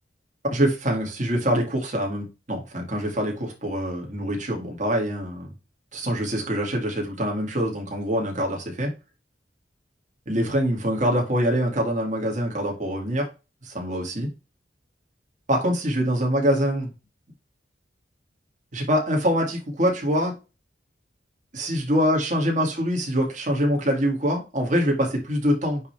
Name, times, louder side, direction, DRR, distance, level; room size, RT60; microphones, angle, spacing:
voice 1, 0.5-5.5 5.9-8.9 10.3-13.3 13.6-14.3 15.5-16.9 18.7-20.3 21.5-25.8, equal, 45° right, 0 dB, 2.3 m, -24 dB
9.3 x 3.4 x 3.3 m, 0.28 s
head